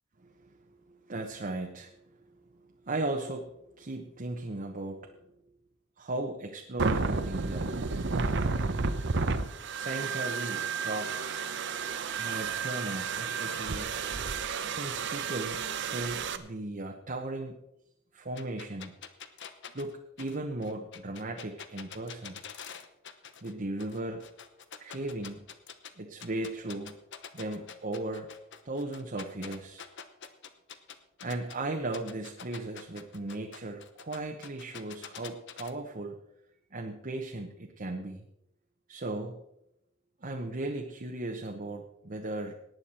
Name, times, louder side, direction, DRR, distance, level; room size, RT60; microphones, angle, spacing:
voice 1, 0.3-5.2 6.0-7.7 9.7-11.4 12.2-14.0 14.6-17.6 18.1-18.9 19.7-22.4 23.4-24.2 24.8-25.5 25.9-27.0 27.3-28.3 28.6-29.9 31.2-36.2 36.7-38.2 38.9-39.4 40.2-42.5, right 2 dB, 45° right, 2 dB, 1.1 m, -37 dB
sound 1, 6.8-16.4, right 4 dB, 60° right, 0.8 m, -32 dB
sound 2, 18.4-23.5 23.8-25.9 26.2-31.6 31.9-35.7, left 7 dB, 60° left, 1.0 m, -46 dB
18.5 x 9.4 x 4.4 m, 0.82 s
head